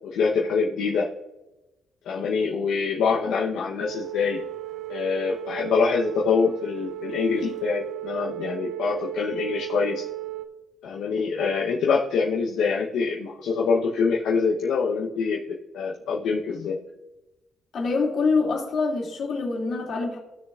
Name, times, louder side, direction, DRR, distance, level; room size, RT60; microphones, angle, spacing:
voice 1, 0.0-1.1 2.1-4.4 4.9-10.0 10.8-16.8, left 5 dB, 80° left, -1 dB, 0.8 m, -25 dB
sound 1, 3.8-10.4, right 16 dB, 75° right, 0.5 m, -35 dB
voice 2, 17.7-20.2, left 4 dB, 60° left, -1 dB, 2.4 m, -25 dB
15.5 x 6.4 x 2.4 m, 1.0 s
cardioid pair, 90°, 0 cm